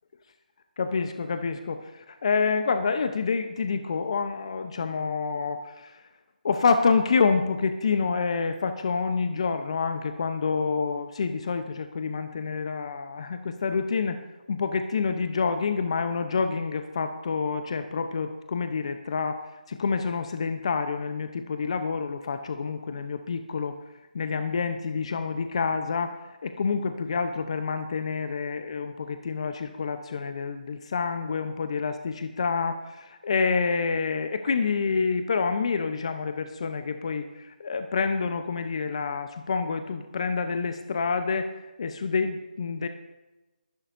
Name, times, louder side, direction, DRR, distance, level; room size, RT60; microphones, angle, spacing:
voice 1, 0.8-6.0 6.4-14.2 14.5-19.4 19.7-23.7 24.1-41.5 41.8-42.9, left 5 dB, 35° left, 8 dB, 0.8 m, -28 dB
22.0 x 11.5 x 2.7 m, 1.1 s
figure-of-eight pair, 165°, 5 cm